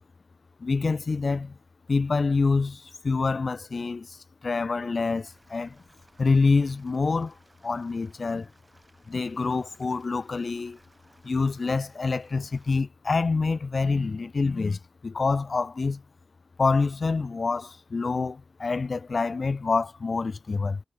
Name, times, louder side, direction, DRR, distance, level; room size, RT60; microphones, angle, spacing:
voice 1, 0.6-1.6 1.9-4.2 4.4-5.8 6.2-7.3 7.6-8.5 9.1-10.8 11.2-16.0 16.6-20.8, left 4 dB, 50° left, 0.7 m, -26 dB
sound 1, 5.2-12.8, right 2 dB, 25° right, 7.5 m, -61 dB
cardioid pair, 65°, 0 cm